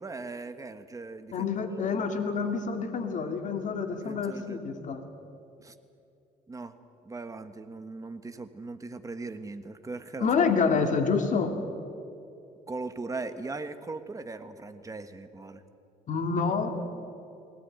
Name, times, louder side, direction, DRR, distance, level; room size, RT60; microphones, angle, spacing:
voice 1, 0.0-1.5 1.8-1.9 4.0-4.6 5.6-5.7 6.5-6.7 7.0-10.3 12.7-15.6, right 3 dB, 20° right, 9 dB, 1.4 m, -39 dB
voice 2, 1.3-5.0 10.2-11.5 16.1-16.8, left 5 dB, 50° left, 5 dB, 2.6 m, -27 dB
19.5 x 19.0 x 9.3 m, 2.6 s
cardioid pair, 110°, 17 cm